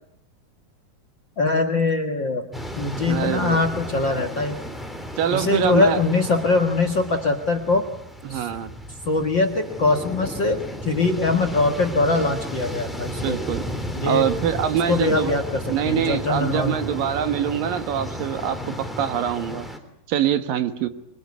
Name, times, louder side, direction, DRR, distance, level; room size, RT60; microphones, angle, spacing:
voice 1, 1.4-2.4 2.8-4.6 5.3-7.8 8.3-8.5 9.0-13.4 13.9-14.3 14.9-16.7, left 3 dB, 45° left, 9 dB, 1.6 m, -22 dB
sound 1, 2.5-19.8, equal, ahead, 2.8 m, -34 dB
voice 2, 3.0-3.6 5.2-6.0 8.2-8.7 13.2-13.6 14.1-15.3 15.7-19.7 20.1-20.9, right 9 dB, 70° right, 10 dB, 2.9 m, -24 dB
25.0 x 24.0 x 9.6 m, 0.75 s
omnidirectional pair, 4.3 m